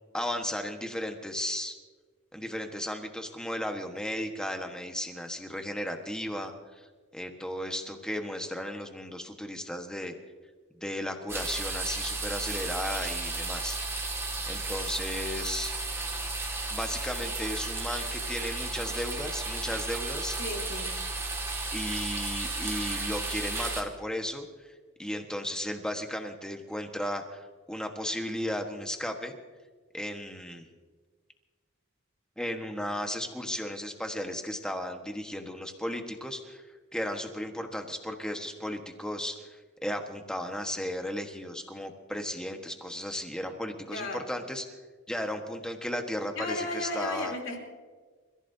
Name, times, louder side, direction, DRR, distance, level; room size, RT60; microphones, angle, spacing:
voice 1, 0.1-1.8 2.3-6.9 7.1-10.1 10.7-14.1 14.5-15.7 16.7-20.4 21.7-24.7 25.0-29.3 29.9-30.7 32.4-44.6 45.1-47.3, equal, 5° left, 4 dB, 1.3 m, -35 dB
sound 1, 11.3-23.8, right 2 dB, 15° right, 2.0 m, -33 dB
voice 2, 20.4-20.9 43.9-44.2 46.3-47.6, left 2 dB, 65° left, 0 dB, 3.5 m, -34 dB
30.0 x 15.5 x 2.8 m, 1.4 s
head